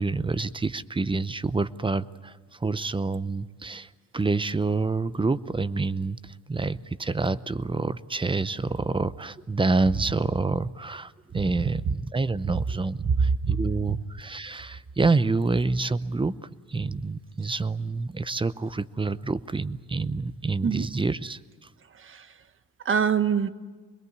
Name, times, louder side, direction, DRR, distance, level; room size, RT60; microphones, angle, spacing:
voice 1, 0.0-16.4 16.7-21.4, right 3 dB, 15° right, 17 dB, 0.7 m, -27 dB
voice 2, 11.3-11.9 12.4-12.6 13.0-14.0 20.6-20.9 22.0-22.3 22.8-23.5, right 6 dB, 45° right, 12 dB, 1.3 m, -25 dB
25.0 x 22.0 x 8.2 m, 1.4 s
cardioid pair, 90°, 30 cm